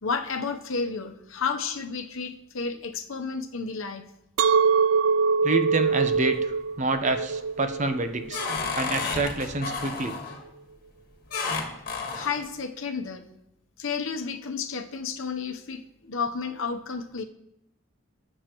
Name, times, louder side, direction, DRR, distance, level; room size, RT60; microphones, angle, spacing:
voice 1, 0.0-4.1 11.9-13.2 13.8-17.2, left 5 dB, 85° left, 6 dB, 0.9 m, -32 dB
Chink clink, 4.4-9.6, right 5 dB, 90° right, 0.3 m, -24 dB
voice 2, 5.4-8.4 8.7-10.2, right 3 dB, 35° right, 8 dB, 0.7 m, -27 dB
sound 1, 5.9-6.5 7.0-7.4 7.8-10.4 11.3-12.4, left 4 dB, 50° left, 1.5 m, -32 dB
17.5 x 6.6 x 3.0 m, 0.83 s
head